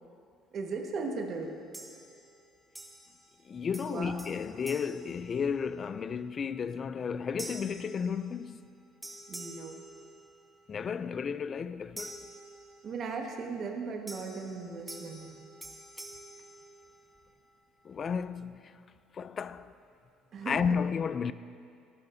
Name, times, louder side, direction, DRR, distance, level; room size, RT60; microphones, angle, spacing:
voice 1, 0.5-1.5 3.8-4.2 9.3-9.8 12.8-15.4 20.3-20.6, right 4 dB, 45° right, 1.4 m, -37 dB
sound 1, 1.7-2.4 2.7-3.4 3.7-5.9 6.4-6.7 7.4-8.7 9.0-10.6 12.0-13.1 14.1-17.3, right 1 dB, 10° right, 1.1 m, -48 dB
voice 2, 3.5-8.7 10.7-12.2 17.8-18.7 19.1-19.7 20.4-21.3, left 6 dB, 35° left, 0.3 m, -33 dB
18.0 x 11.5 x 2.7 m
cardioid pair, 125°, 0 cm